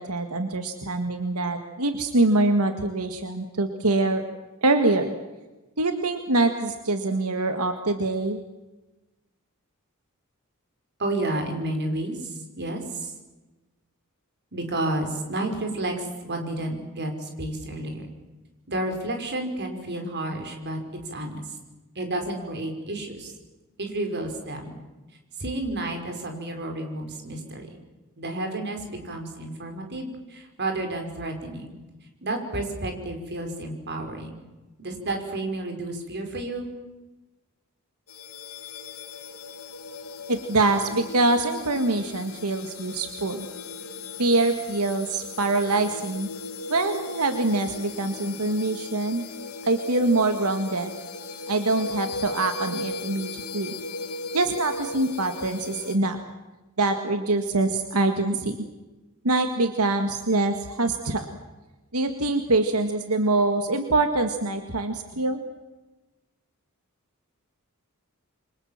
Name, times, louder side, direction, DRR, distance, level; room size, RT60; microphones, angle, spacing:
voice 1, 0.0-4.2 4.6-5.1 5.8-8.4 40.3-43.5 44.2-46.3 46.7-49.3 49.6-50.9 51.5-53.7 54.3-56.2 56.8-58.6 59.2-61.4 61.9-65.4, right 2 dB, 90° right, 7 dB, 2.0 m, -24 dB
voice 2, 11.0-13.1 14.5-18.1 18.7-20.8 21.1-21.6 22.0-23.3 23.8-24.8 25.4-27.8 28.2-31.8 32.2-34.4 34.8-36.7, right 1 dB, 50° right, 4 dB, 5.6 m, -31 dB
sound 1, 38.1-56.0, left 3 dB, 75° left, 2.2 m, -37 dB
28.0 x 25.5 x 7.5 m, 1.1 s
head